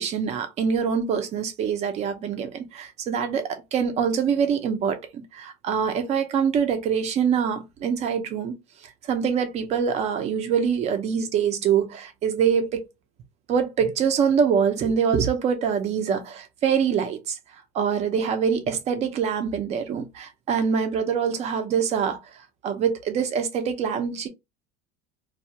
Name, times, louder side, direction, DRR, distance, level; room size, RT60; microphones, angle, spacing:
voice 1, 0.0-12.8 13.5-17.4 17.7-22.2 22.6-24.3, right 7 dB, 30° right, 0.6 m, -24 dB
2.3 x 2.2 x 2.7 m
cardioid pair, 150°, 21 cm